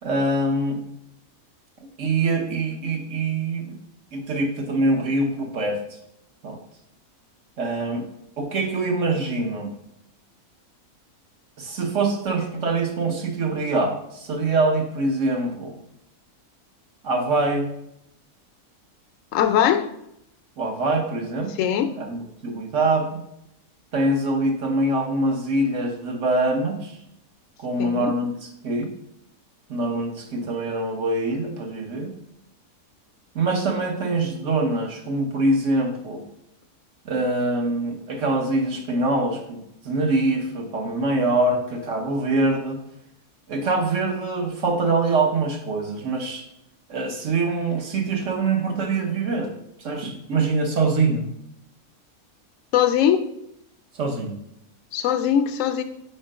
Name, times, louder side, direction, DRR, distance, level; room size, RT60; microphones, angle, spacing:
voice 1, 0.0-0.8 2.0-3.8 4.1-5.8 6.4-6.6 7.6-8.1 8.4-9.7 11.6-15.8 17.0-17.7 20.6-21.5 22.0-23.2 23.9-27.0 27.6-28.3 28.6-28.9 29.7-32.1 33.3-36.2 37.0-39.6 39.8-42.8 43.5-46.4 46.9-49.5 49.8-51.2 53.9-54.4, right 2 dB, 60° right, 3 dB, 1.3 m, -24 dB
voice 2, 19.3-19.9 21.6-21.9 27.8-28.1 52.7-53.3 54.9-55.8, left 9 dB, 70° left, 8 dB, 0.9 m, -20 dB
4.4 x 4.4 x 5.0 m, 0.79 s
omnidirectional pair, 1.5 m